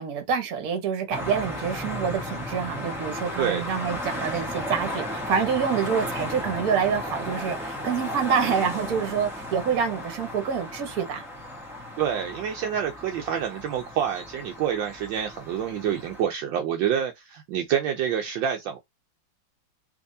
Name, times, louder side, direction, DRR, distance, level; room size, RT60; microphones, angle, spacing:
voice 1, 0.0-11.2, right 7 dB, 55° right, 1.4 m, -27 dB
sound 1, 1.1-16.2, left 1 dB, ahead, 0.8 m, -35 dB
voice 2, 12.0-18.8, right 9 dB, 75° right, 1.3 m, -27 dB
3.4 x 3.3 x 2.6 m
omnidirectional pair, 2.2 m